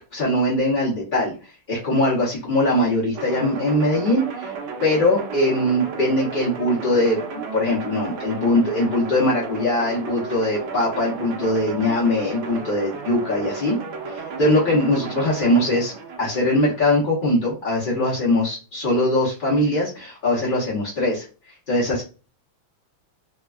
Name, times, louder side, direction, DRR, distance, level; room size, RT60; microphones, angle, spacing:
voice 1, 0.1-1.3 1.7-4.5 4.8-7.2 7.5-13.8 14.1-15.9 16.2-21.2 21.7-22.0, left 1 dB, 45° left, -7 dB, 0.6 m, -21 dB
sound 1, 3.1-16.9, right 4 dB, 70° right, 1.1 m, -34 dB
3.4 x 2.2 x 2.3 m, 0.33 s
omnidirectional pair, 2.1 m